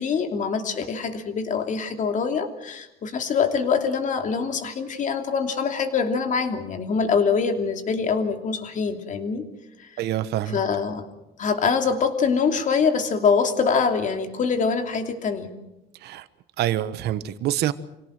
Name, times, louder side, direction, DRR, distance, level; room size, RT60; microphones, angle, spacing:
voice 1, 0.0-9.4 9.8-9.9 10.5-11.0 11.4-15.5, left 5 dB, 50° left, 6 dB, 2.9 m, -24 dB
voice 2, 10.0-10.6 16.0-16.2 16.6-17.7, right 12 dB, 75° right, 13 dB, 1.3 m, -26 dB
26.5 x 17.5 x 7.7 m, 0.93 s
cardioid pair, 110°, 17 cm